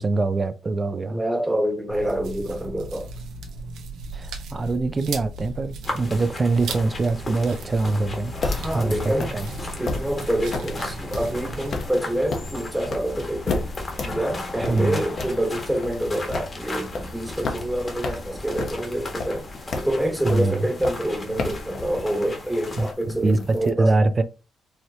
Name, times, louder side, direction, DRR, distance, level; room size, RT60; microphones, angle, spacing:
voice 1, 0.0-1.2 4.1-8.3 8.7-9.5 14.7-15.0 20.2-20.7 22.8-24.2, right 3 dB, 30° right, 0.5 m, -24 dB
voice 2, 1.1-3.1 8.3-9.4 9.8-13.6 14.0-19.5 19.8-24.0, right 1 dB, 5° right, 1.3 m, -27 dB
sound 1, 1.9-11.9, right 2 dB, 80° right, 0.8 m, -37 dB
sound 2, 5.8-22.9, left 2 dB, 30° left, 1.5 m, -36 dB
sound 3, 8.2-23.7, left 3 dB, 55° left, 0.9 m, -34 dB
4.8 x 2.9 x 2.8 m
cardioid pair, 90°, 0 cm